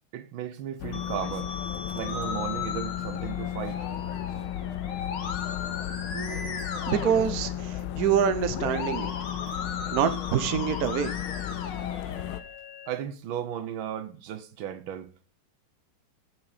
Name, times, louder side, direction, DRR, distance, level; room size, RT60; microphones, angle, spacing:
voice 1, 0.1-1.5 1.9-3.8 12.9-15.1, right 10 dB, 75° right, 1.5 m, -35 dB
sound 1, 0.8-12.4, left 11 dB, 85° left, 1.5 m, -34 dB
Musical instrument, 0.9-12.9, left 6 dB, 60° left, 1.9 m, -37 dB
voice 2, 6.1-9.1 9.9-11.1, right 8 dB, 55° right, 1.1 m, -26 dB
13.0 x 4.9 x 4.9 m
omnidirectional pair, 2.2 m